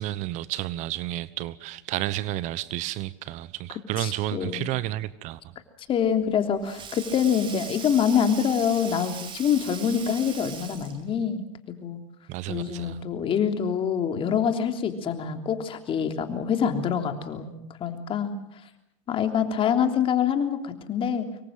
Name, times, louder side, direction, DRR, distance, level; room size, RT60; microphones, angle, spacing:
voice 1, 0.0-5.4 12.3-13.0, right 15 dB, 50° right, 1.1 m, -31 dB
voice 2, 4.0-4.8 5.9-12.0 12.5-17.5 17.8-18.3 19.1-21.3, left 8 dB, 35° left, 3.3 m, -25 dB
Sink (filling or washing), 6.0-11.1, right 7 dB, 30° right, 4.2 m, -40 dB
25.5 x 23.0 x 7.6 m
hypercardioid pair, 110°, 16 cm